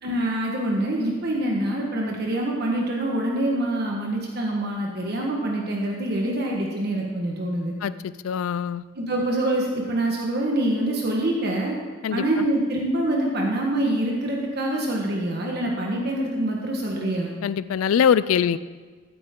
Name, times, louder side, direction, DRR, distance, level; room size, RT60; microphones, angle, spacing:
voice 1, 0.0-7.7 8.9-11.8 12.1-17.3, right 1 dB, 50° right, -1 dB, 1.4 m, -25 dB
voice 2, 7.8-8.8 12.0-12.2 17.1-18.6, left 8 dB, 80° left, 16 dB, 0.3 m, -23 dB
14.0 x 9.3 x 3.7 m, 1.4 s
head